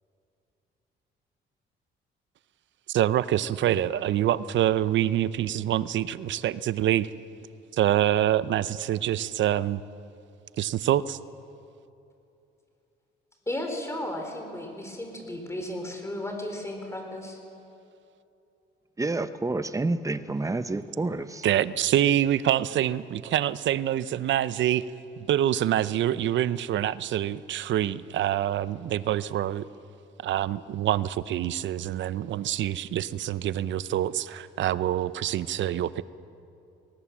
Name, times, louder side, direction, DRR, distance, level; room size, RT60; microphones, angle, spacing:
voice 1, 2.9-7.1 7.7-9.8 10.6-11.2 21.4-24.9 25.2-29.6 30.2-36.0, right 12 dB, 70° right, 0.6 m, -26 dB
voice 2, 13.5-17.4, left 1 dB, 15° left, 4.2 m, -34 dB
voice 3, 19.0-21.5, right 2 dB, 15° right, 0.9 m, -29 dB
19.5 x 18.5 x 7.4 m
cardioid pair, 90°, 20 cm